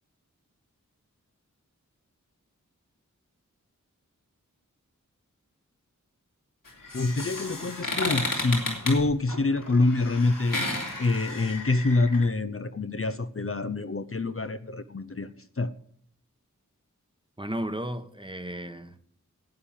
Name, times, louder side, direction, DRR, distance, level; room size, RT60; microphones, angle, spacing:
sound 1, 6.6-12.2, left 2 dB, 90° left, 3.6 m, -33 dB
voice 1, 6.9-10.6 11.0-15.7, left 3 dB, 45° left, 0.7 m, -26 dB
voice 2, 17.4-19.0, equal, 15° right, 1.2 m, -34 dB
11.5 x 8.7 x 9.0 m
wide cardioid pair, 45°, 32 cm